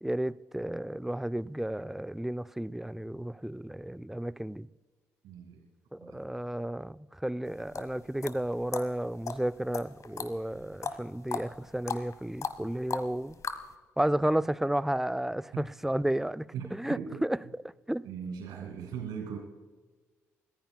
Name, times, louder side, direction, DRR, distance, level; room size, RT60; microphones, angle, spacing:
voice 1, 0.0-4.7 5.9-13.4 14.0-17.4 17.9-18.1, right 1 dB, 5° right, 0.4 m, -32 dB
voice 2, 5.2-5.6 6.0-6.2 15.5-15.6 16.5-17.2 18.0-19.4, right 7 dB, 70° right, 2.2 m, -39 dB
sound 1, 7.5-13.7, left 5 dB, 50° left, 1.4 m, -38 dB
29.0 x 15.0 x 2.3 m
hypercardioid pair, 40°, 7 cm